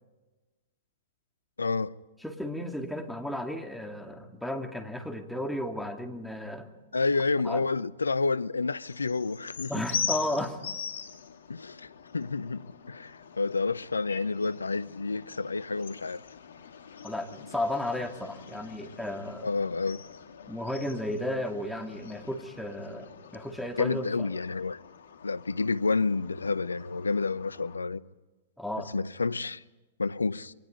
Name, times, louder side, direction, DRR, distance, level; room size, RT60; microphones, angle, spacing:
voice 1, 1.6-2.0 6.9-9.7 11.5-11.9 12.1-16.2 19.4-20.0 23.8-24.8 25.2-28.0 28.9-29.6 30.0-30.5, left 4 dB, 85° left, 0.7 m, -29 dB
voice 2, 2.2-6.7 7.4-7.6 9.7-10.6 17.0-19.5 20.5-24.3 28.6-28.9, left 1 dB, ahead, 2.6 m, -34 dB
sound 1, 8.8-27.8, left 7 dB, 70° left, 2.0 m, -42 dB
28.0 x 24.0 x 5.3 m
figure-of-eight pair, 110°, 0 cm